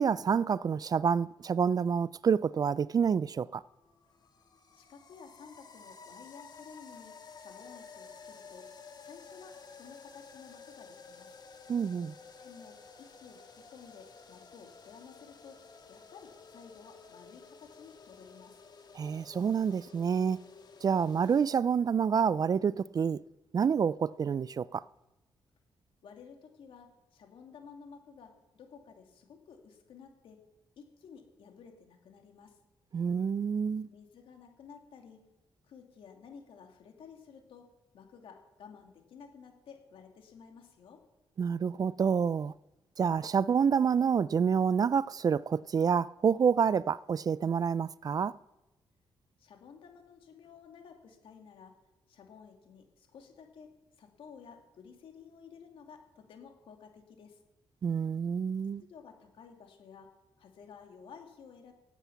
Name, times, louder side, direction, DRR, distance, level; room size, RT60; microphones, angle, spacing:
voice 1, 0.0-3.6 11.7-12.1 19.0-20.4 20.8-23.2 23.5-24.8 32.9-33.9 41.4-42.5 43.0-48.3 57.8-58.8, right 6 dB, 45° right, 0.4 m, -28 dB
sound 1, 3.5-21.5, left 5 dB, 50° left, 1.7 m, -53 dB
voice 2, 4.7-8.7 9.0-11.3 12.4-15.6 15.9-18.6 26.0-30.4 30.8-32.5 33.9-35.2 35.6-41.0 49.4-51.7 52.1-53.7 54.0-57.4 58.8-60.1 60.4-61.7, left 6 dB, 75° left, 2.3 m, -53 dB
16.5 x 8.2 x 5.8 m
cardioid pair, 70°, 9 cm